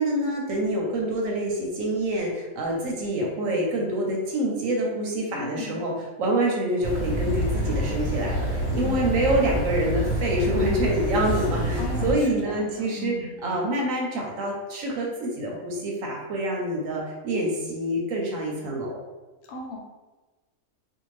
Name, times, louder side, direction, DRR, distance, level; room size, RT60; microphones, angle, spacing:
voice 1, 0.0-13.1 13.4-19.0, right 1 dB, 70° right, -1 dB, 0.9 m, -26 dB
voice 2, 5.3-5.8 8.8-9.4 11.7-13.6 19.5-19.8, left 2 dB, 90° left, -1 dB, 1.2 m, -36 dB
sound 1, 6.8-12.1, equal, 50° left, 1.0 m, -27 dB
2.6 x 2.3 x 3.1 m, 1.2 s
omnidirectional pair, 1.6 m